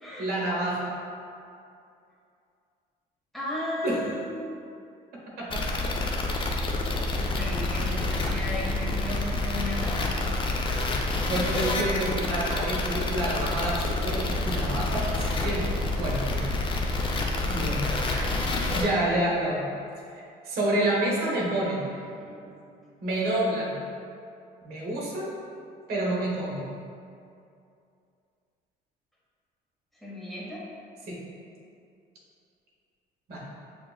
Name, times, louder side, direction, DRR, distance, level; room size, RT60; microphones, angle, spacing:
voice 1, 0.2-0.9 3.8-4.0 5.4-5.6 8.6-8.9 11.3-15.0 15.4-15.6 16.0-16.4 17.5-17.8 18.1-18.3 18.7-19.7 20.4-21.8 23.0-23.7 24.6-25.3 25.9-26.7 31.1-31.2 33.3-33.4, right 1 dB, 70° right, -4 dB, 1.1 m, -28 dB
voice 2, 3.3-4.6 7.0-10.3 17.5-18.4 18.8-18.9 22.2-22.8 29.9-30.6, left 1 dB, ahead, -7 dB, 1.0 m, -36 dB
sound 1, 5.5-18.8, left 2 dB, 30° left, 0.5 m, -28 dB
6.5 x 2.4 x 2.3 m, 2.5 s
cardioid pair, 110°, 17 cm